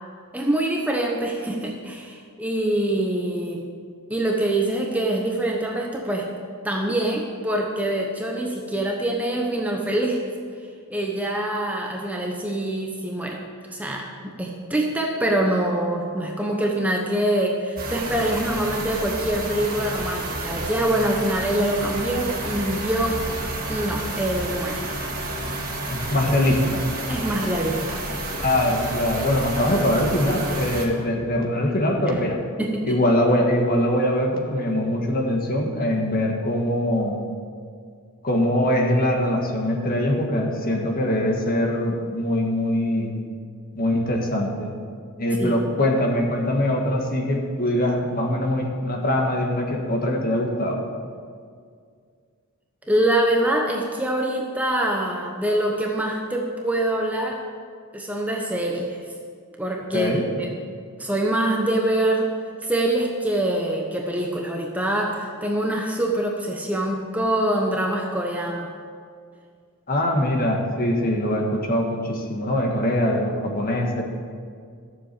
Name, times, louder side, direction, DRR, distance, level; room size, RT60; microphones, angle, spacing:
voice 1, 0.3-3.6 4.1-6.3 6.6-10.2 10.9-13.4 13.7-23.2 23.7-24.9 27.1-28.1 32.1-32.2 32.6-33.0 45.4-45.6 52.9-57.4 57.9-59.1 59.6-60.5 61.0-62.3 62.6-68.7, right 1 dB, 5° right, 0 dB, 0.9 m, -24 dB
sound 1, 17.8-30.9, right 1 dB, 40° right, 2.0 m, -30 dB
voice 2, 25.9-26.9 28.3-32.4 32.8-37.2 38.2-43.2 43.7-44.7 45.2-50.8 59.9-60.2 69.9-74.0, left 1 dB, 40° left, 1 dB, 1.7 m, -22 dB
13.5 x 7.2 x 7.0 m, 2.1 s
head